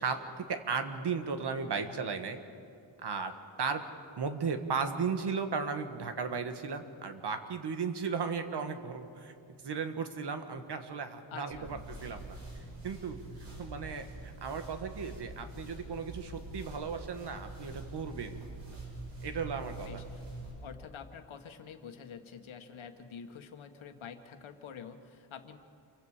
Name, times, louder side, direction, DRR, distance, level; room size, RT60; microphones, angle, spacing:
voice 1, 0.0-2.4 3.0-3.8 4.2-9.3 9.6-12.4 12.8-13.2 13.6-18.4 19.2-19.9, right 5 dB, 60° right, 7 dB, 1.6 m, -35 dB
voice 2, 11.3-11.8 19.9-20.3 20.6-25.6, left 7 dB, 90° left, 6 dB, 1.6 m, -47 dB
sound 1, 11.5-20.5, right 2 dB, 90° right, 7.2 m, -45 dB
28.5 x 23.5 x 5.0 m, 2.5 s
wide cardioid pair, 140°, 46 cm